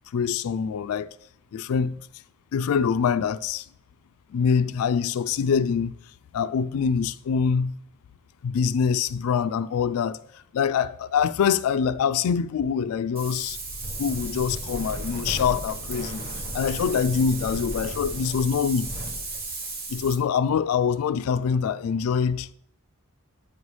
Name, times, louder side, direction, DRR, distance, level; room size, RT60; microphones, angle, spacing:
voice 1, 0.1-1.1 1.5-2.0 2.5-3.6 4.3-5.9 6.3-7.8 8.4-10.2 10.5-13.6 14.0-16.2 16.5-18.9 19.9-22.5, left 6 dB, 75° left, 0.3 m, -24 dB
Wind, 13.2-20.2, right 2 dB, 45° right, 1.0 m, -34 dB
8.7 x 5.5 x 3.2 m
head